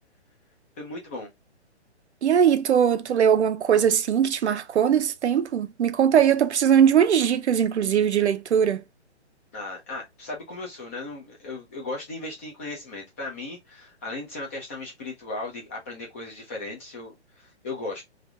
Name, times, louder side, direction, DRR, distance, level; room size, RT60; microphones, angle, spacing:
voice 1, 0.8-1.3 9.5-18.0, left 2 dB, 10° left, 0.4 m, -36 dB
voice 2, 2.2-8.8, right 8 dB, 75° right, 0.7 m, -20 dB
3.3 x 2.5 x 3.3 m
hypercardioid pair, 150°, 34 cm